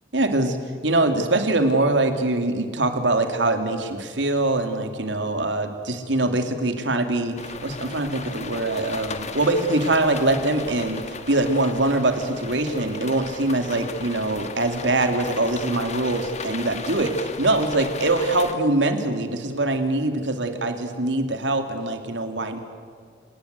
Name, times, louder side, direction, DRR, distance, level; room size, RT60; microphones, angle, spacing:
voice 1, 0.1-0.6 0.8-11.0 11.3-22.6, right 2 dB, 85° right, 6 dB, 2.8 m, -23 dB
sound 1, 7.4-18.5, left 4 dB, 40° left, 1.6 m, -36 dB
29.0 x 18.5 x 8.3 m, 2.2 s
head